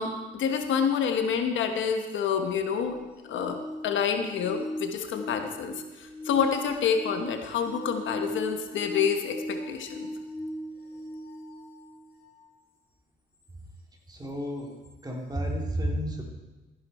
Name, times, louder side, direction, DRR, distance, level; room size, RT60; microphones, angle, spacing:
voice 1, 0.0-3.0 3.3-10.1, left 7 dB, 75° left, 6 dB, 1.2 m, -28 dB
sound 1, 2.8-12.5 14.8-14.9, equal, 55° left, 4.6 m, -39 dB
voice 2, 14.1-16.2, equal, 20° right, 0 dB, 2.9 m, -32 dB
14.0 x 10.5 x 4.3 m, 1.1 s
cardioid pair, 90°, 20 cm